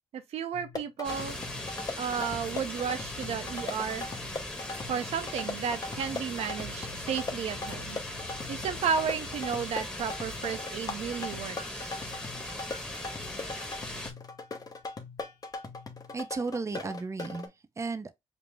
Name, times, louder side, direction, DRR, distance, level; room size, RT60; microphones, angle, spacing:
voice 1, 0.1-1.4 2.0-4.1 4.9-8.0 8.5-11.9, right 7 dB, 85° right, 0.6 m, -33 dB
sound 1, 0.5-17.5, left 3 dB, 35° left, 0.8 m, -40 dB
sound 2, 1.0-14.1, left 1 dB, 10° left, 1.1 m, -39 dB
sound 3, 6.8-11.6 11.9-12.0, left 16 dB, 65° left, 0.7 m, -53 dB
voice 2, 16.1-18.1, right 4 dB, 30° right, 0.6 m, -34 dB
5.2 x 2.0 x 3.3 m
cardioid pair, 95°, 10 cm